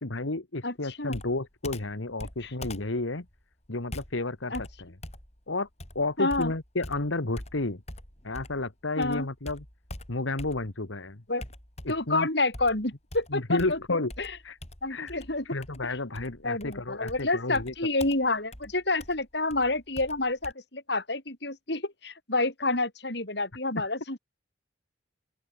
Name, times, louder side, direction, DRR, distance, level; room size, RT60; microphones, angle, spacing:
voice 1, 0.0-3.2 3.7-4.9 5.5-5.7 5.9-7.8 8.2-9.6 10.1-11.2 11.8-12.3 13.3-14.1 14.4-14.6 14.9-15.2 15.4-17.7, left 2 dB, 90° left, 1.8 m, -31 dB
voice 2, 0.6-1.2 2.4-2.5 4.5-4.6 6.2-6.5 9.0-9.3 11.3-11.4 11.9-14.3 14.8-15.4 16.4-24.2, left 2 dB, 60° left, 4.5 m, -29 dB
Computer keyboard, 1.1-8.7 9.0-10.9 11.4-12.1 12.5-20.5, left 1 dB, 35° left, 5.6 m, -44 dB
open air
head